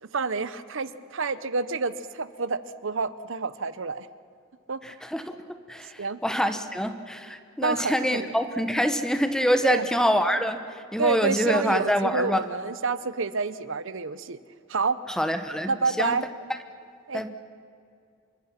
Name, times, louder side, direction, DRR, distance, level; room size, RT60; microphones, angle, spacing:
voice 1, 0.0-4.1 4.7-4.8 6.0-6.2 7.6-8.3 9.6-9.9 11.0-14.4 14.7-15.0 15.7-16.3 17.1-17.2, right 4 dB, 65° right, 14 dB, 0.9 m, -28 dB
voice 2, 4.8-5.4 5.7-5.9 6.2-10.6 10.9-12.4 15.2-15.7 16.0-16.2 17.1-17.3, equal, 5° left, 8 dB, 1.1 m, -25 dB
27.5 x 23.5 x 5.9 m, 2.3 s
head